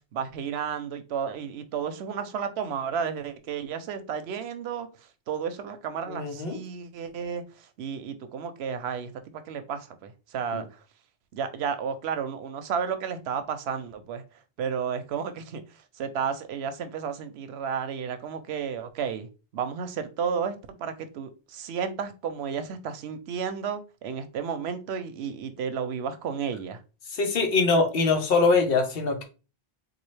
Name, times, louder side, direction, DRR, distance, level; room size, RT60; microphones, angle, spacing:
voice 1, 0.1-4.9 5.3-10.6 11.3-14.2 14.6-15.6 16.0-19.3 19.5-26.8, right 7 dB, 85° right, 0.8 m, -32 dB
voice 2, 6.1-6.6 10.5-10.6 27.1-29.2, left 4 dB, 65° left, 1.0 m, -23 dB
3.9 x 2.4 x 3.1 m
omnidirectional pair, 1.1 m